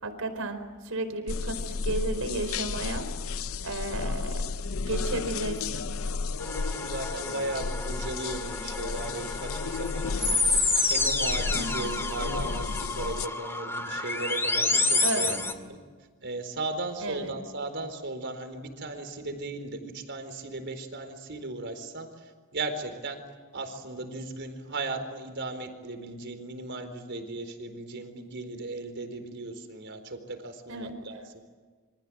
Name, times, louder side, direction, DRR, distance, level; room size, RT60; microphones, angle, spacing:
voice 1, 0.0-3.1 3.6-4.5 4.9-6.0 11.5-12.0 15.0-15.5 17.0-17.3 30.7-31.0, right 2 dB, 75° right, 9 dB, 4.5 m, -33 dB
sound 1, 1.3-13.3, left 4 dB, 70° left, 0.7 m, -33 dB
voice 2, 6.3-10.4 10.9-15.3 15.7-15.8 16.2-23.2 23.5-31.2, right 2 dB, 55° right, 8 dB, 4.4 m, -36 dB
sound 2, 6.4-15.5, left 3 dB, 10° left, 2.3 m, -29 dB
28.0 x 26.0 x 7.7 m, 1.5 s
head